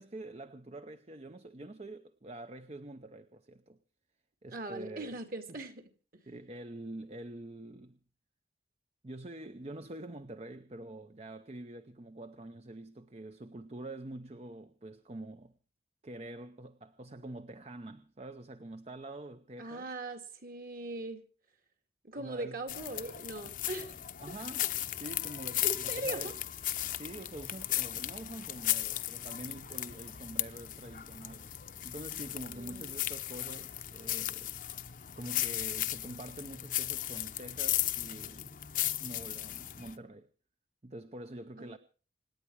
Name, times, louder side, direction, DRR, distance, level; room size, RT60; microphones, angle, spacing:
voice 1, 0.0-3.8 4.4-5.1 6.3-8.0 9.0-15.6 16.0-19.9 22.2-22.6 24.2-26.4 26.8-31.5 31.8-34.5 35.2-38.6 39.0-40.3 40.8-41.8, right 1 dB, 35° right, 0.7 m, -46 dB
voice 2, 4.5-6.2 19.6-21.3 22.0-24.0 24.6-24.7 25.6-26.3 32.5-33.0 41.6-41.8, right 2 dB, 50° right, 2.3 m, -40 dB
sound 1, 22.7-40.0, left 13 dB, 45° left, 0.8 m, -36 dB
26.5 x 10.0 x 4.7 m
head